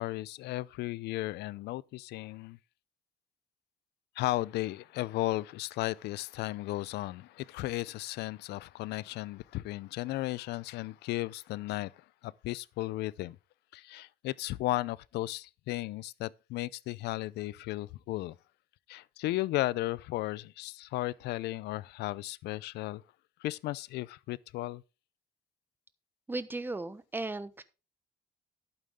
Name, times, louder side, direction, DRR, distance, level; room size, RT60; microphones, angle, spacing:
voice 1, 0.0-2.6 4.2-13.4 13.7-18.4 18.9-23.0 23.4-24.8, left 17 dB, 80° left, 0.6 m, -35 dB
voice 2, 26.3-27.6, right 2 dB, 10° right, 1.0 m, -36 dB
11.5 x 8.9 x 3.6 m
cardioid pair, 110°, 17 cm